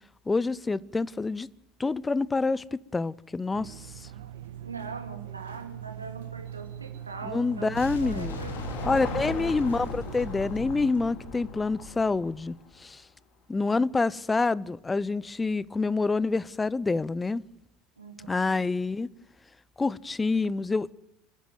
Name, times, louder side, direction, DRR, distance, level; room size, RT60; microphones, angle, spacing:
voice 1, 0.3-1.5 1.8-4.1 7.3-8.4 8.8-13.0 13.5-17.4 18.3-19.1 19.8-20.9, left 3 dB, 15° left, 0.7 m, -27 dB
sound 1, 3.5-10.9, right 11 dB, 70° right, 1.6 m, -42 dB
voice 2, 4.6-9.5 18.0-18.6, right 5 dB, 85° right, 2.5 m, -42 dB
Car passing by / Engine, 6.4-12.9, left 5 dB, 45° left, 3.4 m, -41 dB
Boom, 7.8-12.7, left 2 dB, 75° left, 2.2 m, -39 dB
28.5 x 10.5 x 9.4 m
figure-of-eight pair, 70°, 0 cm